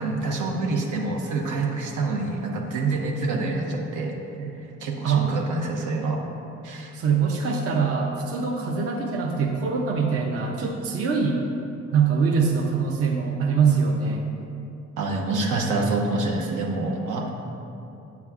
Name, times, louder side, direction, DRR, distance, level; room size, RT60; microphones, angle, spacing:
voice 1, 0.0-4.5 4.8-6.2 6.6-6.9 15.0-17.3, right 3 dB, 80° right, 0 dB, 0.9 m, -27 dB
voice 2, 5.0-5.4 6.9-11.4 11.9-14.3, right 5 dB, 50° right, 1 dB, 0.6 m, -23 dB
7.2 x 6.8 x 2.4 m, 2.8 s
cardioid pair, 90°, 30 cm